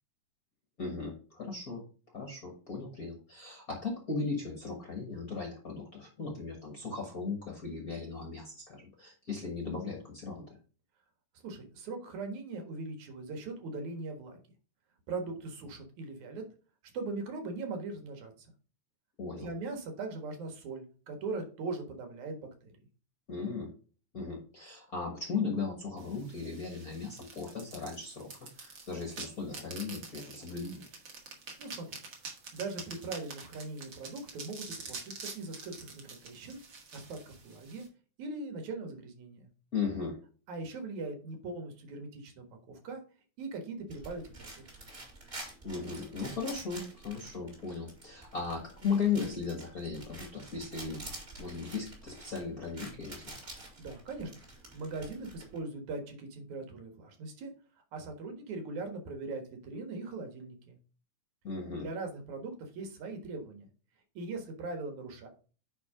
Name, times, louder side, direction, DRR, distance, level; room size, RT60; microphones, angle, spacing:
voice 1, 0.8-1.8 2.1-10.6 19.2-19.5 23.3-23.7 24.1-30.8 39.7-40.2 45.6-51.1 51.4-53.4 61.4-61.9, left 5 dB, 45° left, 1 dB, 1.2 m, -37 dB
voice 2, 11.4-14.4 15.1-16.4 16.9-18.5 19.3-22.7 31.6-32.0 32.5-36.6 36.9-37.9 38.2-39.5 40.5-43.0 43.4-44.6 53.6-54.3 54.7-57.5 57.9-60.8 61.8-63.7 64.1-65.3, right 3 dB, 75° right, 5 dB, 2.9 m, -40 dB
sound 1, 26.0-37.9, right 4 dB, 45° right, 2.2 m, -47 dB
sound 2, 43.9-55.6, right 2 dB, 25° right, 3.1 m, -48 dB
9.6 x 3.6 x 4.9 m, 0.38 s
omnidirectional pair, 3.4 m